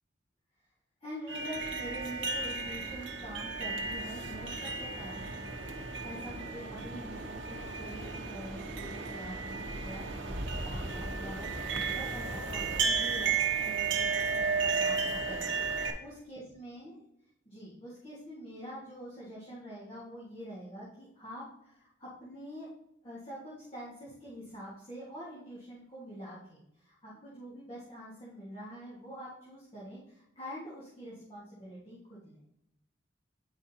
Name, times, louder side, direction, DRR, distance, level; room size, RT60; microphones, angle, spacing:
voice 1, 1.0-5.3 6.0-17.0 17.4-22.7 23.0-32.4, equal, 30° left, -7 dB, 1.5 m, -45 dB
sound 1, 1.3-15.9, right 4 dB, 75° right, 0.9 m, -34 dB
9.5 x 4.9 x 2.8 m, 0.82 s
head